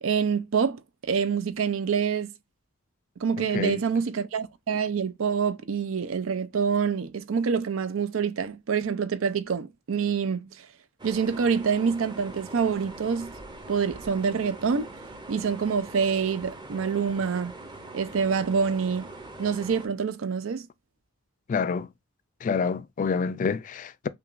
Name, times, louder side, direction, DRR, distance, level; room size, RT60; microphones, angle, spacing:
voice 1, 0.0-2.3 3.2-10.7 11.0-13.3 13.7-14.9 15.3-17.5 17.9-19.1 19.4-20.7, right 6 dB, 90° right, 0.5 m, -26 dB
voice 2, 3.4-3.8 21.5-21.9 22.4-24.1, left 5 dB, 40° left, 0.3 m, -27 dB
sound 1, 11.0-19.9, right 2 dB, 25° right, 0.6 m, -43 dB
5.8 x 2.3 x 2.5 m
head